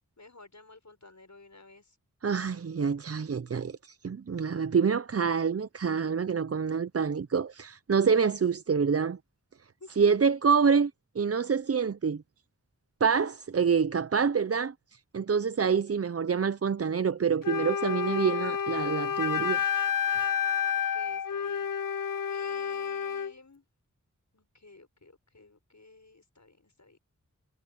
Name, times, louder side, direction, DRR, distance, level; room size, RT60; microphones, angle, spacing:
voice 1, 0.2-2.0 9.8-9.9 20.7-21.7 22.3-23.6 24.3-27.0, left 3 dB, 60° left, 7.1 m, -53 dB
voice 2, 2.2-9.2 10.0-10.9 11.2-12.2 13.0-14.7 15.1-19.6, right 6 dB, 45° right, 0.6 m, -26 dB
Wind instrument woodwind instrument, 17.4-23.3, left 8 dB, 85° left, 0.7 m, -30 dB
wide cardioid pair, 45°, 32 cm